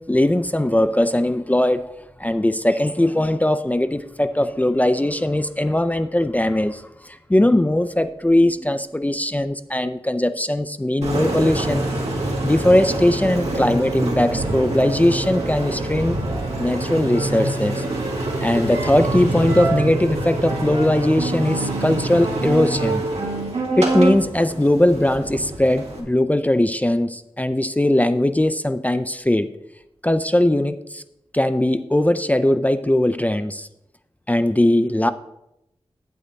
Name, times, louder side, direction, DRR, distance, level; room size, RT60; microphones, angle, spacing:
voice 1, 0.0-1.9 2.2-11.9 12.4-16.2 16.6-17.8 18.4-23.0 23.8-29.5 30.0-31.0 31.3-33.7 34.3-35.1, left 1 dB, 15° left, 11 dB, 0.4 m, -20 dB
Engine, 11.0-26.0, right 2 dB, 80° right, 2.0 m, -25 dB
8.4 x 7.8 x 4.0 m, 0.85 s
cardioid pair, 40°, 11 cm